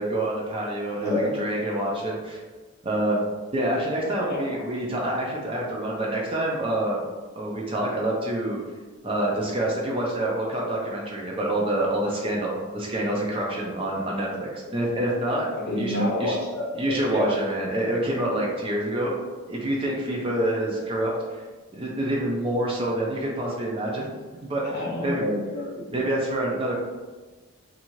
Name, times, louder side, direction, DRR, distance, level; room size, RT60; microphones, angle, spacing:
voice 1, 0.0-2.4 2.8-3.2 3.5-7.0 7.3-8.6 9.0-15.5 15.8-16.4 16.7-19.1 19.5-21.4 21.7-24.1 24.4-24.8 25.0-25.2 25.9-26.7, right 1 dB, 25° right, -3 dB, 0.4 m, -27 dB
voice 2, 0.9-1.4 4.2-4.5 15.5-17.4 24.6-25.9, left 1 dB, 50° left, -4 dB, 0.7 m, -28 dB
2.6 x 2.3 x 2.9 m, 1.3 s
head